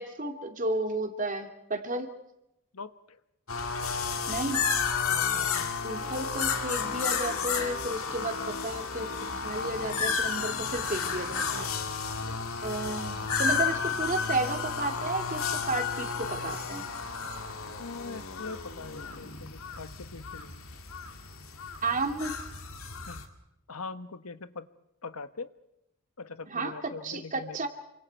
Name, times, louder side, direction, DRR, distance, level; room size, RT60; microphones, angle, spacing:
voice 1, 0.0-2.1 4.3-4.7 5.8-11.7 12.6-16.8 21.8-22.4 26.5-27.7, right 2 dB, 35° right, 4 dB, 2.4 m, -33 dB
voice 2, 2.7-3.2 5.1-5.7 12.2-12.4 17.8-20.7 23.1-23.2 23.7-24.7 25.0-25.5 26.2-27.6, left 4 dB, 90° left, 11 dB, 1.3 m, -42 dB
sound 1, 3.5-23.2, left 5 dB, 70° left, 2.5 m, -32 dB
28.0 x 26.0 x 4.6 m, 0.84 s
head